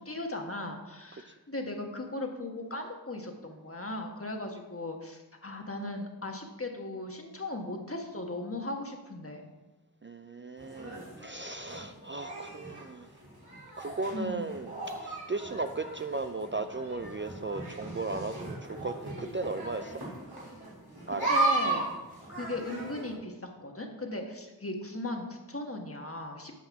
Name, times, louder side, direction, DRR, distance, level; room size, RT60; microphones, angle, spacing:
voice 1, 0.0-9.5 14.1-14.4 21.3-21.9 22.3-26.5, left 1 dB, 35° left, 3 dB, 1.3 m, -37 dB
voice 2, 10.0-13.1 13.8-20.0 21.1-21.3, right 3 dB, 30° right, 9 dB, 0.4 m, -36 dB
sound 1, 10.6-23.1, right 2 dB, 80° right, 3.3 m, -36 dB
8.5 x 5.3 x 5.9 m, 1.1 s
wide cardioid pair, 40°, 38 cm